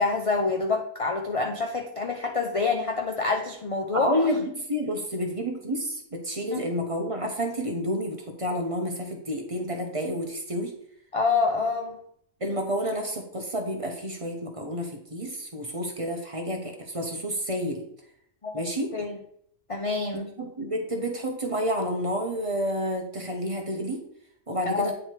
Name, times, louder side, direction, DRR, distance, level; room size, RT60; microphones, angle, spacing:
voice 1, 0.0-4.1 6.5-6.6 11.1-12.0 18.4-18.6 18.9-19.2 19.7-20.3 24.7-24.9, left 4 dB, 55° left, 3 dB, 0.4 m, -27 dB
voice 2, 3.9-10.7 12.4-17.8 18.5-18.9 20.4-24.0 24.5-24.9, equal, 30° right, 2 dB, 0.8 m, -29 dB
8.7 x 3.3 x 4.5 m, 0.68 s
omnidirectional pair, 1.4 m